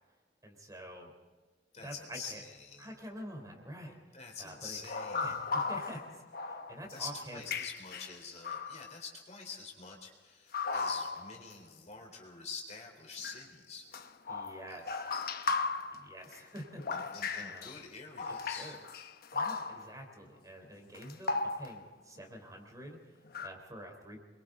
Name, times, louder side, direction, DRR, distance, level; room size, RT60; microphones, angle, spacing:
voice 1, 0.4-1.1 1.8-2.4 2.8-4.0 4.4-4.9 5.2-7.4 14.3-15.0 15.9-16.8 17.3-17.8 18.3-18.8 19.3-24.2, equal, 20° right, 3 dB, 4.0 m, -47 dB
voice 2, 1.7-2.9 4.1-5.4 6.9-13.9 14.7-14.8 16.9-18.7, left 5 dB, 40° left, 1 dB, 4.1 m, -46 dB
sound 1, 4.8-7.0 7.4-8.9 10.5-11.5 13.2-13.4 13.9-17.8 18.2-20.0 20.9-21.9 23.2-23.5, left 4 dB, 60° left, 1.0 m, -36 dB
28.0 x 23.0 x 4.0 m, 1.3 s
head